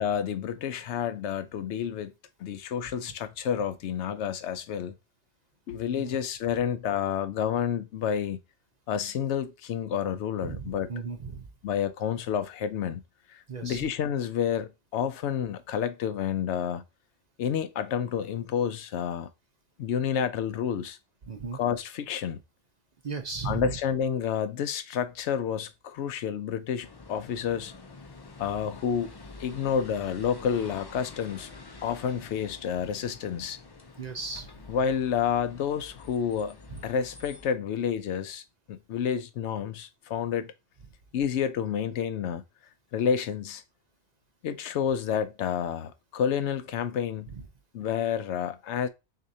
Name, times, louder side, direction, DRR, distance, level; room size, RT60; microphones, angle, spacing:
voice 1, 0.0-2.1 2.4-4.9 5.7-8.4 8.9-10.9 11.6-13.0 13.3-16.8 17.4-19.3 19.8-21.0 21.5-22.4 23.4-27.7 28.4-29.1 29.4-31.5 31.8-33.6 34.7-36.6 36.8-40.5 41.1-42.4 42.9-43.6 44.4-47.3 47.7-48.9, left 8 dB, 85° left, 0.9 m, -29 dB
voice 2, 10.4-11.5 13.5-13.8 21.3-21.6 23.0-23.7 34.0-34.5 36.7-36.8 47.3-47.4, right 5 dB, 45° right, 0.6 m, -36 dB
sound 1, 26.8-37.6, left 3 dB, 35° left, 0.4 m, -47 dB
6.3 x 2.5 x 2.7 m
omnidirectional pair, 1.2 m